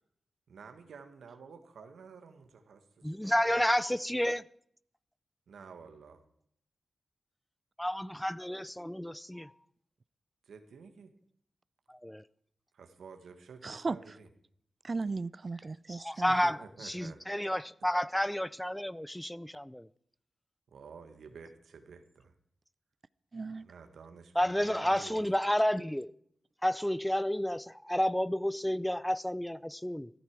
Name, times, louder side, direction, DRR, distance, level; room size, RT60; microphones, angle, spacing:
voice 1, 0.5-3.7 5.5-6.2 10.4-11.1 12.7-14.3 16.3-17.2 17.8-17.9 20.7-22.3 23.6-25.3, right 5 dB, 90° right, 1.7 m, -51 dB
voice 2, 3.0-4.4 7.8-9.5 11.9-12.2 15.9-19.9 24.4-26.1 26.6-30.1, equal, 5° left, 0.5 m, -31 dB
voice 3, 13.6-14.0 14.8-16.4 23.3-23.7, right 3 dB, 45° right, 0.5 m, -36 dB
15.0 x 13.5 x 4.8 m
cardioid pair, 65°, 0 cm